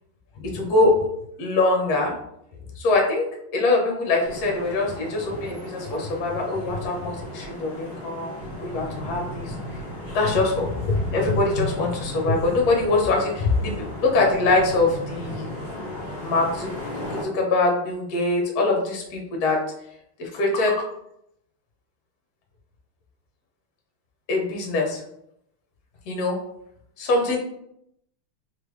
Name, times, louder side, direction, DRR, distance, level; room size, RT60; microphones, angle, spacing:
voice 1, 0.4-1.1 1.4-2.1 2.8-3.3 3.5-8.3 8.6-9.5 10.1-15.5 16.2-19.6 20.2-20.9 24.3-25.0 26.1-26.4 27.0-27.4, left 2 dB, 55° left, 0 dB, 1.1 m, -23 dB
sound 1, 4.2-17.2, left 1 dB, 30° left, 1.8 m, -35 dB
3.8 x 3.3 x 3.1 m, 0.76 s
omnidirectional pair, 2.4 m